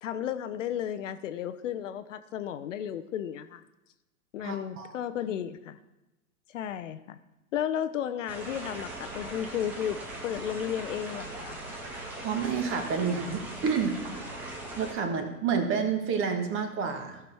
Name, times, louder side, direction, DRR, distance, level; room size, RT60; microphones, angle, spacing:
voice 1, 0.0-3.6 4.3-5.8 6.5-7.2 7.5-11.6, left 10 dB, 55° left, 11 dB, 0.7 m, -33 dB
voice 2, 4.4-4.9 12.2-14.0 14.3-14.4 14.7-17.2, right 6 dB, 25° right, 6 dB, 1.5 m, -29 dB
sound 1, 8.3-14.9, right 2 dB, 5° right, 0.3 m, -40 dB
15.0 x 6.1 x 4.5 m, 1.0 s
figure-of-eight pair, 105°, 45 cm